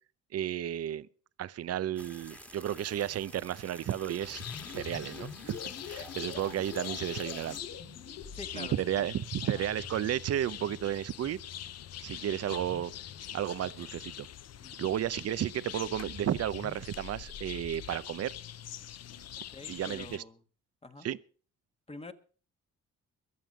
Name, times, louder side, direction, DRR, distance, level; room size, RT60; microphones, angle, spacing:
voice 1, 0.3-1.1 1.4-5.6 5.9-7.6 8.5-11.4 12.0-12.9 13.3-14.3 14.8-18.3 19.7-20.2 21.0-21.2, right 11 dB, 55° right, 0.7 m, -33 dB
sound 1, 1.9-7.6, equal, 5° left, 1.8 m, -51 dB
sound 2, 4.2-20.2, left 11 dB, 55° left, 0.7 m, -44 dB
sound 3, 4.4-14.5 15.8-17.9, left 6 dB, 70° left, 3.5 m, -47 dB
voice 2, 8.3-9.1 9.4-9.6 12.1-12.3 14.6-15.0 19.5-20.4 20.8-21.1 21.9-22.1, left 2 dB, 20° left, 1.5 m, -47 dB
22.5 x 7.5 x 5.2 m
cardioid pair, 90°, 30 cm